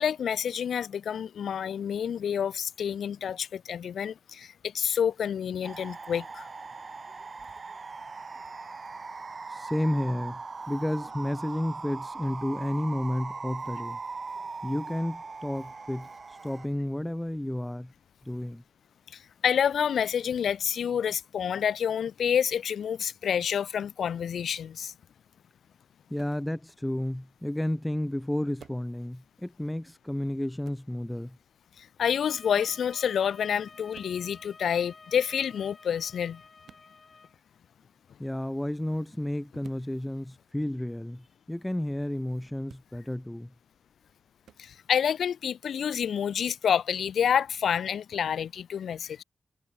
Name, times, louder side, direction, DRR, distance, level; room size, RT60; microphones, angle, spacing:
voice 1, 0.0-6.5 19.1-24.9 31.8-36.4 44.6-49.2, left 8 dB, 85° left, 0.7 m, -28 dB
sound 1, 5.6-16.7, right 4 dB, 35° right, 3.9 m, -40 dB
voice 2, 9.5-14.0 14.6-16.1 16.4-17.9 18.2-18.6 26.1-31.4 38.2-43.5, left 1 dB, 5° left, 0.9 m, -32 dB
sound 2, 26.2-26.4 28.6-28.9 30.6-30.9 32.6-32.9 33.9-34.2 36.6-36.9 39.6-39.9 42.6-42.9 44.4-44.6, right 8 dB, 80° right, 3.1 m, -53 dB
sound 3, 32.0-37.4, left 4 dB, 35° left, 2.0 m, -51 dB
wide cardioid pair, 145°, 0 cm